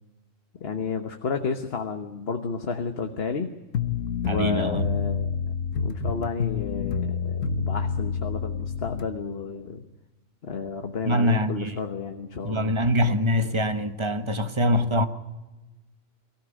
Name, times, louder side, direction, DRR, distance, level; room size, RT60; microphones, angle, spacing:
voice 1, 0.5-3.5 4.2-5.3 5.6-9.8 10.4-12.9, left 5 dB, 55° left, 1.4 m, -32 dB
sound 1, 3.7-9.1, left 6 dB, 85° left, 1.5 m, -28 dB
voice 2, 4.3-4.8 11.0-11.7 12.4-15.1, equal, 25° right, 1.2 m, -24 dB
23.0 x 15.5 x 10.0 m
omnidirectional pair, 1.3 m